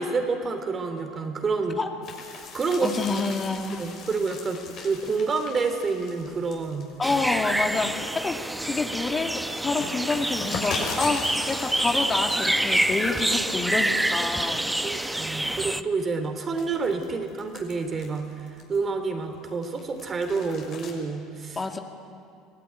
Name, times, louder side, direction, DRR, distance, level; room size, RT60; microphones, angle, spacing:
voice 1, 0.0-1.8 2.4-3.0 3.8-7.0 14.8-21.6, right 4 dB, 35° right, 7 dB, 3.4 m, -28 dB
sound 1, 2.0-7.9 8.4-14.3 14.6-15.1 15.6-18.9 19.3-20.9, left 4 dB, 50° left, 6.0 m, -39 dB
voice 2, 2.8-3.9 7.0-14.6 21.6-21.8, left 3 dB, 25° left, 4 dB, 2.2 m, -28 dB
sound 2, 7.0-15.8, right 1 dB, 5° right, 1.0 m, -27 dB
25.0 x 17.0 x 9.5 m, 2.4 s
hypercardioid pair, 70°, 0 cm